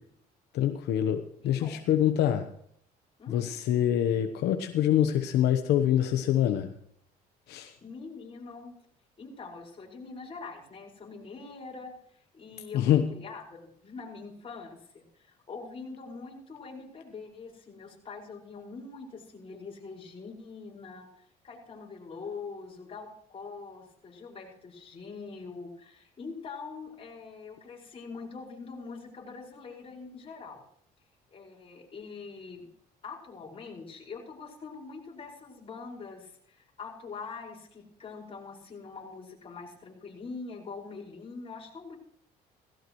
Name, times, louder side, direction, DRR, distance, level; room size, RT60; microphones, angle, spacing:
voice 1, 0.5-2.5 3.3-6.7 7.5-7.8 12.7-13.1, left 10 dB, 80° left, 7 dB, 1.1 m, -25 dB
voice 2, 3.2-3.5 7.8-8.8 9.2-30.6 31.3-32.7 33.0-42.0, left 4 dB, 35° left, -1 dB, 5.4 m, -44 dB
17.5 x 16.0 x 3.1 m, 0.67 s
cardioid pair, 110°, 17 cm